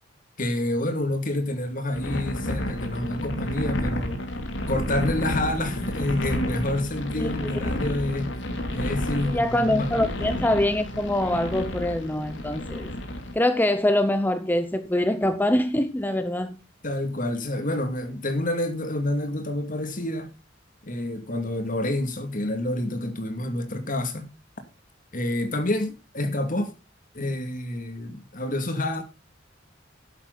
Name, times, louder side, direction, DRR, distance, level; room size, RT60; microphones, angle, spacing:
voice 1, 0.4-4.2 4.7-8.3 8.7-10.0 16.8-20.3 20.8-24.3 25.1-26.7 27.1-29.0, left 1 dB, 45° left, 2.3 m, -28 dB
sound 1, 1.9-13.3, left 1 dB, 65° left, 2.9 m, -30 dB
voice 2, 7.2-7.5 9.3-12.9 13.3-16.6, left 1 dB, 10° left, 0.7 m, -24 dB
12.5 x 10.5 x 4.0 m
head